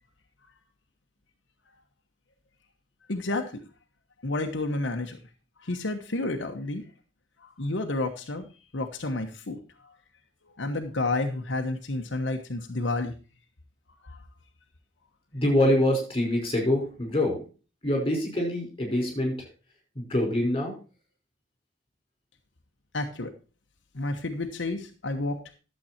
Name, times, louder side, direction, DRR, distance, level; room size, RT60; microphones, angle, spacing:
voice 1, 3.1-3.6 4.2-5.2 5.6-6.8 7.4-8.5 8.7-9.6 10.6-13.1 14.0-14.2 22.9-23.3 23.9-25.4, left 2 dB, 80° left, 4 dB, 1.2 m, -30 dB
voice 2, 15.3-17.4 17.8-19.5 20.0-20.7, left 1 dB, 25° left, 1 dB, 5.2 m, -25 dB
12.0 x 7.8 x 4.3 m, 0.34 s
head